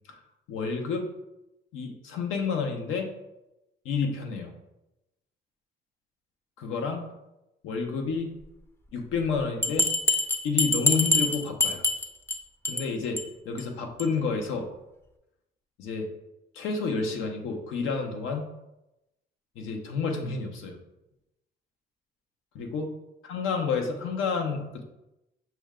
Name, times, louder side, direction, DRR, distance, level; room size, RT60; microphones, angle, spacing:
voice 1, 0.5-1.1 1.7-3.1 3.8-4.5 6.6-7.1 7.6-8.3 8.9-9.9 10.4-11.8 12.6-14.7 15.8-16.1 16.5-18.4 19.6-20.8 22.5-22.9 23.2-24.8, left 4 dB, 90° left, 3 dB, 0.7 m, -30 dB
Bell, 9.6-12.4 12.6-12.9 13.2-13.3 13.6-13.7 14.0-14.1, left 1 dB, 10° left, 0.4 m, -25 dB
5.9 x 2.2 x 3.6 m, 0.92 s
cardioid pair, 90°, 20 cm